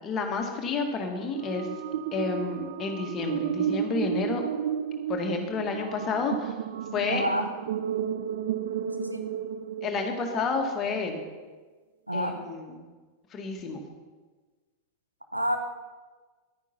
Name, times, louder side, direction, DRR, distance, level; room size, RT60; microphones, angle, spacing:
voice 1, 0.0-1.7 2.1-4.4 5.1-6.5 6.9-7.2 9.8-11.2 12.1-12.9 13.3-13.8, left 4 dB, 30° left, 3 dB, 1.9 m, -30 dB
sound 1, 1.2-10.6, right 9 dB, 60° right, 0.5 m, -33 dB
voice 2, 7.1-7.5 8.8-9.3 12.1-12.4 15.3-15.6, equal, 90° right, 5 dB, 1.2 m, -29 dB
11.0 x 9.5 x 5.7 m, 1.4 s
figure-of-eight pair, 90°, 0 cm